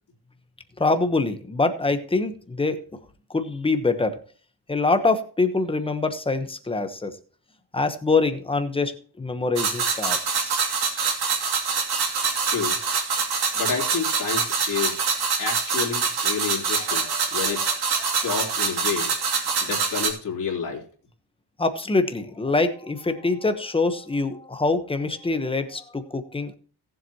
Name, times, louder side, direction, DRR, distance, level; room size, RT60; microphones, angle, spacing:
voice 1, 0.8-2.8 3.3-4.2 4.7-7.2 7.7-10.6 16.9-17.2 17.4-17.6 18.1-18.2 21.6-26.5, left 3 dB, 15° left, 8 dB, 1.0 m, -25 dB
sound 1, 9.6-20.1, right 5 dB, 65° right, 2.8 m, -25 dB
voice 2, 12.5-12.8 13.5-15.0 15.4-17.7 18.2-19.1 19.6-20.8, left 6 dB, 50° left, -1 dB, 3.1 m, -29 dB
18.0 x 7.7 x 2.9 m, 0.43 s
wide cardioid pair, 170°, 41 cm